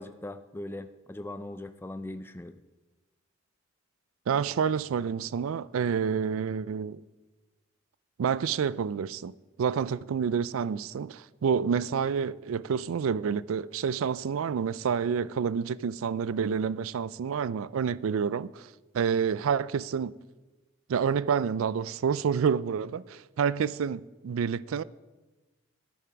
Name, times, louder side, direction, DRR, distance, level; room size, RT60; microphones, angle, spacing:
voice 1, 0.0-2.6, left 1 dB, 10° left, 0.3 m, -40 dB
voice 2, 4.3-7.0 8.2-9.3 9.6-18.7 18.9-20.2 20.9-24.8, right 7 dB, 80° right, 0.4 m, -28 dB
10.0 x 8.7 x 5.8 m
head